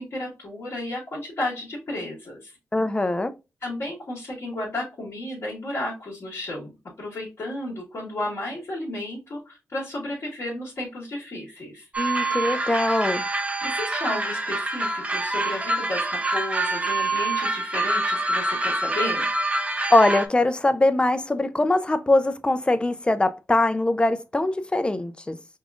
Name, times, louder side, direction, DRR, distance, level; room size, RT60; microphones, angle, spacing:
voice 1, 0.0-2.6 3.6-6.7 7.0-11.9 13.6-19.3, left 1 dB, 60° left, 1.5 m, -33 dB
voice 2, 2.7-3.3 12.0-13.2 19.9-25.4, left 2 dB, 20° left, 0.4 m, -22 dB
sound 1, 11.9-20.3, right 2 dB, 25° right, 0.8 m, -26 dB
5.3 x 2.4 x 2.4 m
cardioid pair, 65°, 5 cm